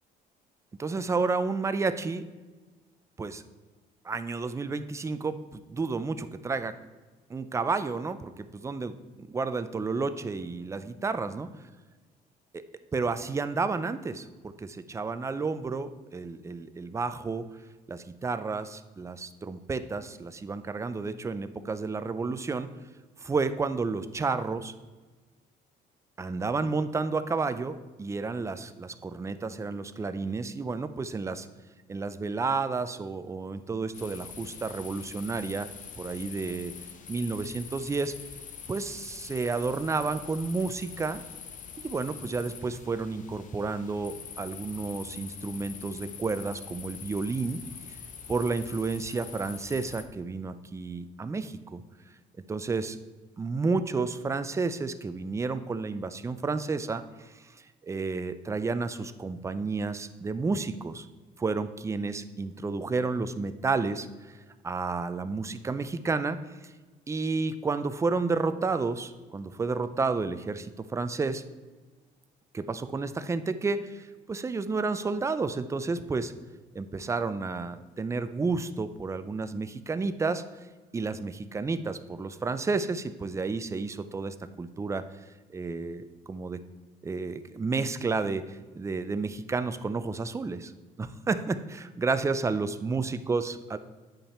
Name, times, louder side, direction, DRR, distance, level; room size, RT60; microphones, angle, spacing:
voice 1, 0.8-2.3 3.2-3.4 4.0-6.7 7.3-11.5 12.5-12.6 12.9-17.4 17.9-22.7 23.2-24.7 26.2-31.5 31.9-35.7 36.0-36.7 37.1-38.1 38.7-41.2 41.8-47.6 48.3-51.8 52.5-53.0 53.4-57.4 57.8-61.1 61.4-64.4 64.6-66.4 67.1-71.4 72.5-76.3 76.7-80.4 80.9-85.0 85.5-86.6 87.0-90.7 91.0-93.8, right 4 dB, 15° right, 12 dB, 0.4 m, -31 dB
sound 1, 33.9-50.0, left 7 dB, 50° left, 0.8 m, -44 dB
8.9 x 5.6 x 4.3 m, 1.3 s
cardioid pair, 110°, 17 cm